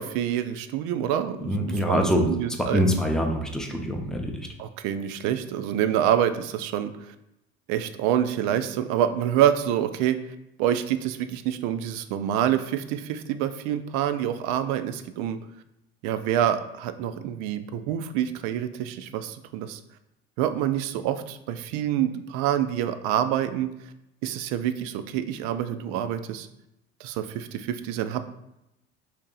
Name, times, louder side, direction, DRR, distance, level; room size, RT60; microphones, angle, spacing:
voice 1, 0.0-2.8 4.6-6.9 7.7-10.2 10.6-15.4 16.0-19.8 20.4-23.7 24.2-26.5 27.0-28.2, right 10 dB, 60° right, 11 dB, 0.4 m, -26 dB
voice 2, 1.4-2.3 2.6-4.5, equal, ahead, 2 dB, 0.6 m, -24 dB
2.9 x 2.9 x 3.7 m, 0.85 s
hypercardioid pair, 75°, 32 cm